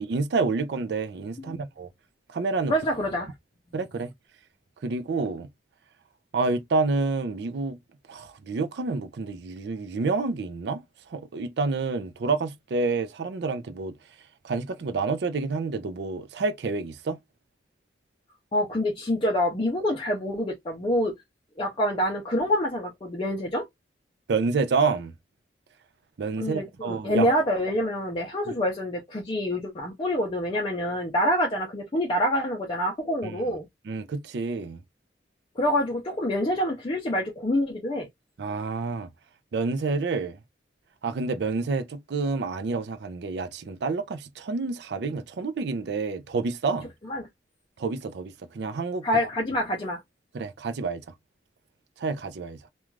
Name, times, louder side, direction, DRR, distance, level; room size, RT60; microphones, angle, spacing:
voice 1, 0.0-1.9 2.3-2.7 3.7-4.1 4.8-5.5 6.3-7.8 8.1-10.8 11.1-13.9 14.4-17.2 24.3-25.1 26.2-27.3 33.2-33.4 33.9-34.8 38.4-39.1 39.5-40.4 41.0-46.9 47.8-49.1 50.3-51.0 52.0-52.6, right 4 dB, 65° right, 0.4 m, -28 dB
voice 2, 2.7-3.3 18.5-21.1 21.6-23.7 26.4-33.7 35.6-38.1 47.1-47.3 49.0-50.0, left 1 dB, 30° left, 0.5 m, -26 dB
2.4 x 2.2 x 3.0 m
head